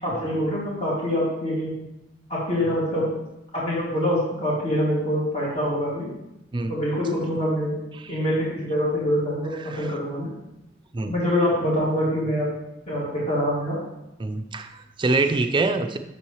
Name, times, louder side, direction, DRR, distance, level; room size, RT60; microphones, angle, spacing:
voice 1, 0.0-1.7 2.3-3.1 3.5-6.1 6.7-7.8 8.1-10.3 11.1-12.5 12.9-13.8, equal, 30° left, -6 dB, 2.3 m, -25 dB
voice 2, 14.2-16.0, right 3 dB, 25° right, 7 dB, 0.4 m, -25 dB
8.5 x 6.2 x 3.1 m, 0.90 s
head